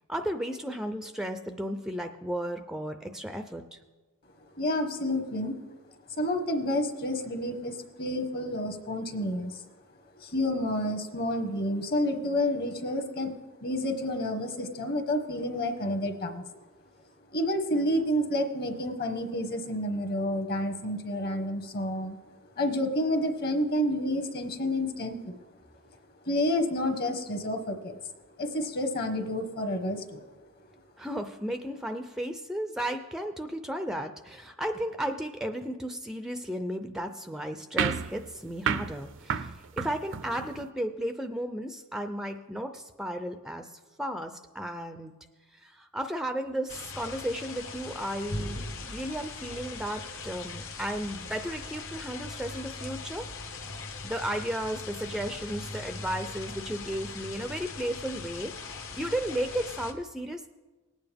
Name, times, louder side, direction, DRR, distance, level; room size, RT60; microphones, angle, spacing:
voice 1, 0.1-3.8 31.0-43.7 44.0-45.1 45.5-53.3 54.0-60.5, right 1 dB, 5° right, 7 dB, 0.4 m, -34 dB
voice 2, 4.6-5.6 6.1-9.7 10.2-13.4 13.6-16.4 17.3-22.2 22.6-25.4 26.2-28.0 28.4-30.2, left 1 dB, 45° left, 6 dB, 1.2 m, -29 dB
sound 1, 37.8-40.7, right 7 dB, 60° right, 0.5 m, -32 dB
sound 2, 46.7-59.9, left 3 dB, 60° left, 1.1 m, -40 dB
19.5 x 9.0 x 3.5 m, 1.2 s
head